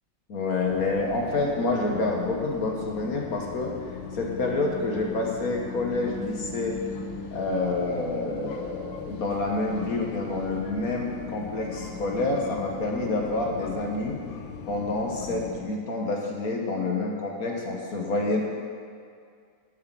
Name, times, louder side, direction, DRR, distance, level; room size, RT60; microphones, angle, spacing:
voice 1, 0.3-3.7 4.1-6.8 7.3-14.2 14.7-18.4, left 2 dB, 50° left, 0 dB, 1.6 m, -28 dB
train departure interior, 0.6-15.6, left 5 dB, 80° left, 1.6 m, -39 dB
8.1 x 8.0 x 7.5 m, 2.2 s
omnidirectional pair, 2.1 m